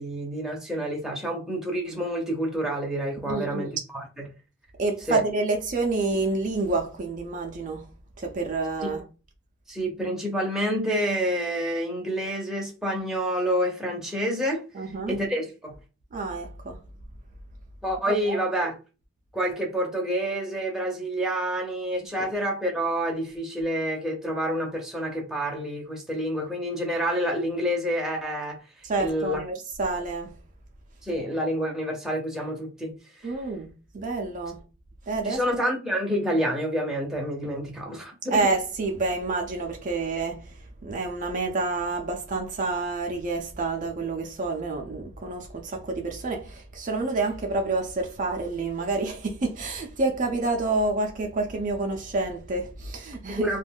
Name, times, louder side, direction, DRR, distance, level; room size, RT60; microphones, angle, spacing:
voice 1, 0.0-3.7 3.9-4.3 5.1-5.2 9.7-14.6 15.1-15.7 17.8-18.8 19.3-28.6 29.0-29.4 31.0-33.0 33.2-33.3 35.2-38.4 53.4-53.6, equal, 5° right, 0.7 m, -28 dB
voice 2, 3.3-3.7 4.8-7.9 8.2-9.0 14.7-15.2 16.1-16.8 18.3-18.4 28.8-30.3 33.2-33.7 33.9-34.6 35.1-35.4 38.3-40.5 40.8-53.6, right 3 dB, 40° right, 0.4 m, -28 dB
2.4 x 2.2 x 3.4 m
head